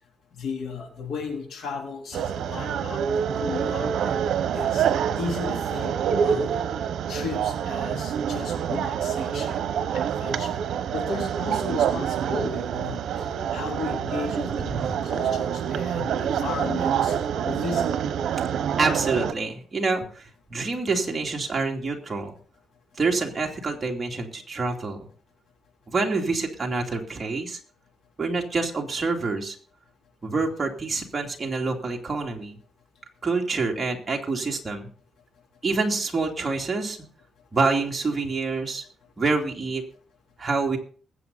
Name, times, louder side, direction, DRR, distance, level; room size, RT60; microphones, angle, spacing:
voice 1, 0.3-3.0 3.3-4.2 4.5-4.9 5.2-6.0 6.2-6.5 7.1-10.6 10.9-13.0 13.5-14.7 15.0-17.2 17.4-17.9, left 4 dB, 70° left, 3 dB, 3.9 m, -34 dB
sound 1, 2.1-19.3, right 8 dB, 70° right, 1.1 m, -26 dB
voice 2, 18.8-22.3 23.0-25.0 25.9-27.6 28.2-29.5 30.2-32.6 33.2-34.9 35.6-37.0 37.5-38.8 39.2-39.8 40.4-40.8, right 3 dB, 20° right, 0 dB, 2.8 m, -27 dB
20.5 x 8.3 x 4.1 m, 0.41 s
cardioid pair, 145°, 0 cm